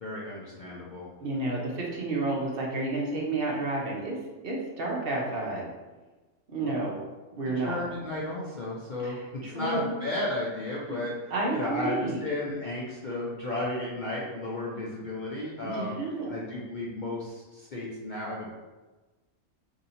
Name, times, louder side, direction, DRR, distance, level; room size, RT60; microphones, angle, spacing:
voice 1, 0.0-1.1 6.6-6.8 7.5-11.1 11.5-16.0 16.2-18.5, left 1 dB, 55° left, -5 dB, 0.5 m, -33 dB
voice 2, 1.2-4.2 4.4-5.7 6.5-6.9 7.4-7.8 9.0-10.0 10.9-11.0 11.3-12.2 15.6-16.3, right 2 dB, 55° right, -3 dB, 0.8 m, -31 dB
2.7 x 2.7 x 4.0 m, 1.2 s
omnidirectional pair, 1.3 m